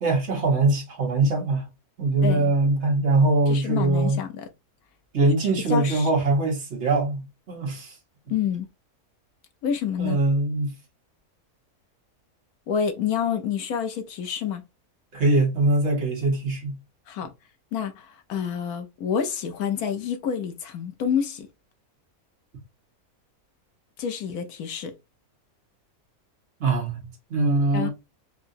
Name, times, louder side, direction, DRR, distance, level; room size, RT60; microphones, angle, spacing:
voice 1, 0.0-1.6 2.0-4.2 5.1-7.2 7.5-7.9 10.0-10.7 15.1-16.8 26.6-27.9, right 2 dB, 50° right, 1.2 m, -22 dB
voice 2, 2.2-2.5 3.5-4.5 5.7-6.1 8.3-8.7 9.6-10.2 12.7-14.6 17.1-17.3 17.7-21.5 24.0-24.9 27.7-27.9, left 7 dB, 75° left, 1.2 m, -28 dB
4.7 x 2.2 x 2.6 m
omnidirectional pair, 1.6 m